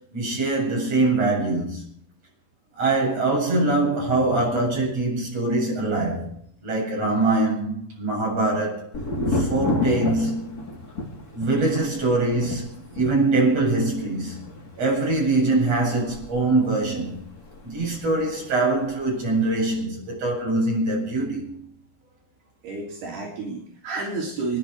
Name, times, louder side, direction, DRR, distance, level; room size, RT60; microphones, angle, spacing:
voice 1, 0.1-1.8 2.8-6.3 6.6-8.9 9.3-10.6 11.3-12.7 13.0-14.4 14.8-17.2 17.6-21.6, right 2 dB, 40° right, 8.9 m, -23 dB
Thunder, 8.9-18.6 18.8-19.6, left 2 dB, 25° left, 2.8 m, -32 dB
voice 2, 22.6-24.6, right 3 dB, 75° right, 5.3 m, -30 dB
26.0 x 10.5 x 4.9 m
omnidirectional pair, 4.6 m